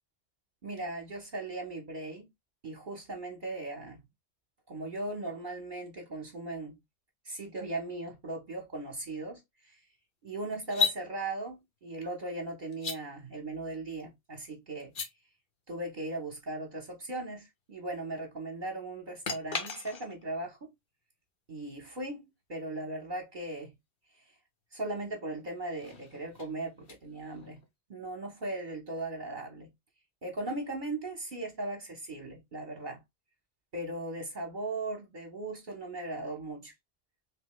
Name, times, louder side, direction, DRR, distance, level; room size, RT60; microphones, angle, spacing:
voice 1, 0.6-2.3 2.6-4.0 4.7-6.8 7.2-9.9 10.2-14.9 15.7-20.7 21.5-23.7 24.1-24.3 24.7-27.6 27.9-29.7 30.2-33.0 33.7-36.7, right 2 dB, 50° right, 1.0 m, -38 dB
sound 1, 10.6-11.0 12.7-13.0 14.8-15.1 19.2-20.3 23.4-23.5 25.5-27.7, left 5 dB, 60° left, 1.0 m, -35 dB
3.3 x 2.7 x 3.0 m
omnidirectional pair, 1.1 m